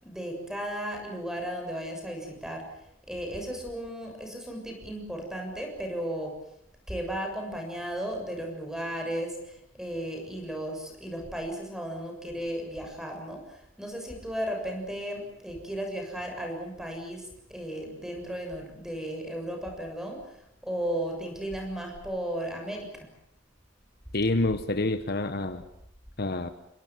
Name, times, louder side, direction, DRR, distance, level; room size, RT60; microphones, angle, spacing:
voice 1, 0.0-2.7 3.1-6.4 6.9-22.9, equal, 5° right, 2 dB, 7.1 m, -35 dB
voice 2, 24.1-25.6 26.2-26.5, left 2 dB, 50° left, 10 dB, 1.2 m, -27 dB
29.5 x 22.0 x 7.5 m, 0.79 s
head